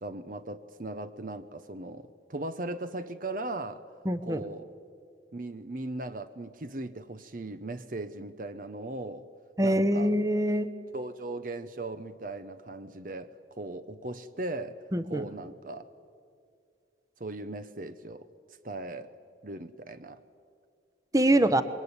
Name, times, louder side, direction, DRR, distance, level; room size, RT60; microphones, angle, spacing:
voice 1, 0.0-3.8 4.2-4.7 5.3-9.3 9.6-10.2 10.9-14.8 15.0-15.9 17.2-18.3 18.6-19.1 19.4-20.2, right 2 dB, 50° right, 0.9 m, -38 dB
voice 2, 4.0-4.4 9.6-10.7 14.9-15.3 21.1-21.6, right 1 dB, 20° right, 1.0 m, -24 dB
28.0 x 22.0 x 9.8 m
head